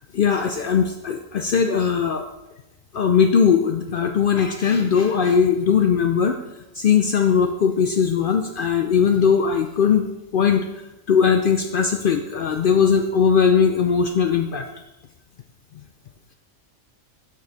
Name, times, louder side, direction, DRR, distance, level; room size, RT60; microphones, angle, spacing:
voice 1, 0.1-2.2 2.9-6.4 6.8-10.7 11.1-14.6, left 6 dB, 75° left, 6 dB, 0.4 m, -19 dB
8.2 x 5.4 x 3.9 m, 0.97 s
omnidirectional pair, 1.5 m